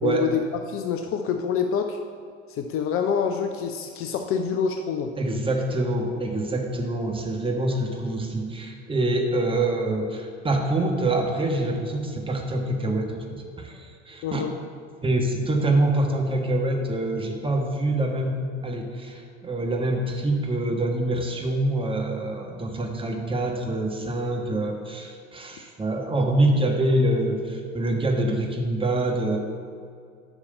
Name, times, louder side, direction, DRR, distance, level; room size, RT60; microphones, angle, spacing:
voice 1, 0.0-2.0 2.5-5.1 14.2-14.5, left 7 dB, 40° left, 6 dB, 0.6 m, -26 dB
voice 2, 5.2-14.4 15.0-29.4, right 1 dB, 15° right, 1 dB, 1.4 m, -25 dB
8.0 x 5.7 x 6.7 m, 2.3 s
figure-of-eight pair, 70°, 36 cm